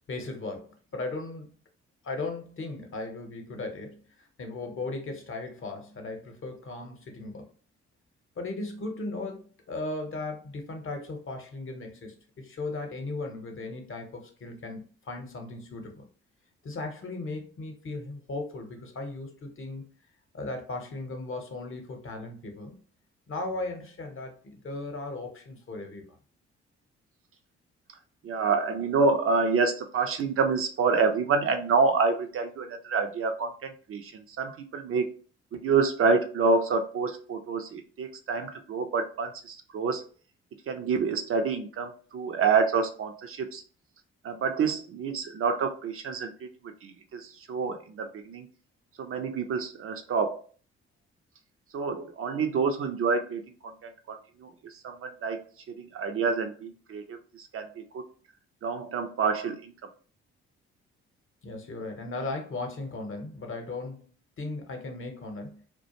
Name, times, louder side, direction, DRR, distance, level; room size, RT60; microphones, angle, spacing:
voice 1, 0.1-1.5 2.0-4.0 4.4-7.5 8.4-16.0 16.6-19.8 20.3-22.8 23.3-26.0 61.4-64.1 64.4-65.6, left 2 dB, 40° left, 4 dB, 0.8 m, -37 dB
voice 2, 28.2-35.2 35.5-40.1 40.7-43.6 44.2-48.5 49.0-50.5 51.7-55.4 55.7-58.0 58.6-59.7, right 4 dB, 45° right, 6 dB, 0.5 m, -28 dB
2.4 x 2.1 x 2.8 m, 0.41 s
hypercardioid pair, 45°, 31 cm